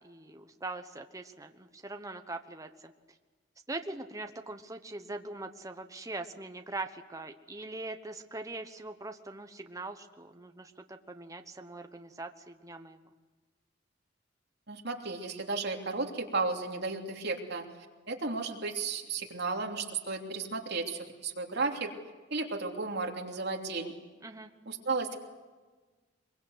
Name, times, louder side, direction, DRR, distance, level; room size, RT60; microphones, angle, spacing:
voice 1, 0.0-2.9 3.7-13.1 24.2-24.5, right 2 dB, 15° right, 6 dB, 1.1 m, -42 dB
voice 2, 14.7-17.6 18.1-21.9 22.3-23.9 24.7-25.2, right 3 dB, 60° right, 1 dB, 3.1 m, -34 dB
24.0 x 23.0 x 8.0 m, 1.3 s
head